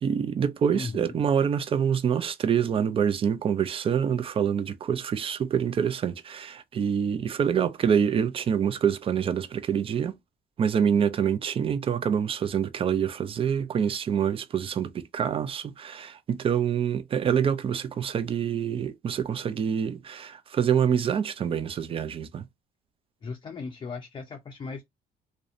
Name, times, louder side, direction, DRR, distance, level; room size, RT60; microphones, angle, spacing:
voice 1, 0.0-10.2 10.6-22.5, right 8 dB, 35° right, 0.3 m, -26 dB
voice 2, 0.7-1.1 23.2-24.8, left 4 dB, 30° left, 0.4 m, -37 dB
2.6 x 2.1 x 2.4 m
cardioid pair, 110°, 17 cm